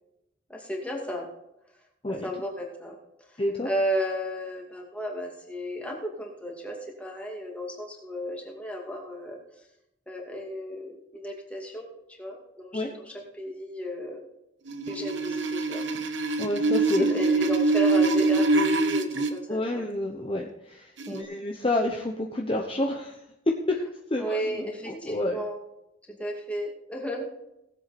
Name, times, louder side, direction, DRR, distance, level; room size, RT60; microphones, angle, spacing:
voice 1, 0.5-1.3 2.2-3.0 3.6-9.4 10.1-11.9 12.2-12.8 13.1-14.2 14.9-15.8 17.0-19.8 21.1-21.3 24.2-25.6 26.1-27.2, equal, 5° left, -1 dB, 2.5 m, -33 dB
voice 2, 3.4-3.7 12.7-12.9 16.4-17.1 19.5-23.8 24.1-24.6 24.8-25.4, left 1 dB, 30° left, 2 dB, 1.0 m, -29 dB
sound 1, 14.7-19.3 21.0-21.2, right 3 dB, 80° right, 1.2 m, -24 dB
18.0 x 8.0 x 4.3 m, 0.86 s
head